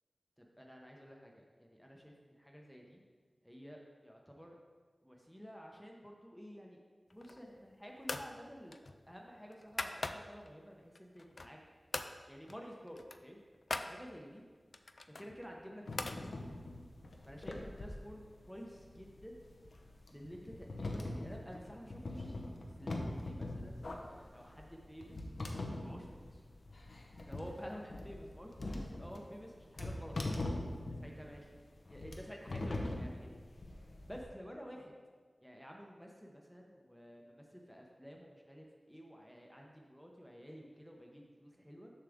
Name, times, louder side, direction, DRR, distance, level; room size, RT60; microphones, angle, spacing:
voice 1, 0.4-2.1 2.4-3.0 3.4-4.6 5.0-6.8 7.1-8.8 9.1-11.6 12.3-13.4 13.8-14.4 15.2-16.1 16.5-16.6 17.2-19.4 20.1-22.4 22.8-25.3 25.8-26.4 27.2-31.5 31.9-33.3 34.0-34.9 35.4-41.9, equal, ahead, 0 dB, 0.8 m, -51 dB
sound 1, 7.1-7.6 8.0-8.3 8.7-10.5 11.0-11.6 11.9-12.1 12.5-12.6 12.9-13.9 14.7-16.2, left 2 dB, 65° left, 0.4 m, -42 dB
sound 2, 15.9-34.2, left 2 dB, 85° left, 0.8 m, -42 dB
6.9 x 6.5 x 3.6 m, 1.5 s
wide cardioid pair, 75°, 0 cm